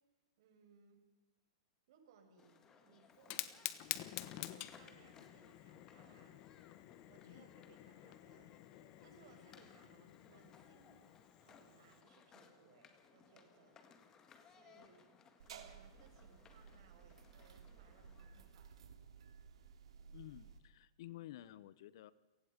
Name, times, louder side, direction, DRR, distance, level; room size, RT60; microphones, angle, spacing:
voice 1, 0.4-1.0 1.9-3.8 4.2-6.4 7.1-8.5 9.0-11.1 11.4-13.8 14.4-15.1 15.5-19.0, right 6 dB, 55° right, 4 dB, 6.1 m, -67 dB
sound 1, 2.4-18.8, left 6 dB, 20° left, 1.9 m, -65 dB
Fire, 3.1-12.0, left 16 dB, 35° left, 1.2 m, -49 dB
sound 2, 15.4-20.6, right 6 dB, 80° right, 3.3 m, -57 dB
voice 2, 20.1-22.1, left 14 dB, 50° left, 18 dB, 0.9 m, -53 dB
28.0 x 19.5 x 5.3 m, 1.2 s
supercardioid pair, 160°, 3 cm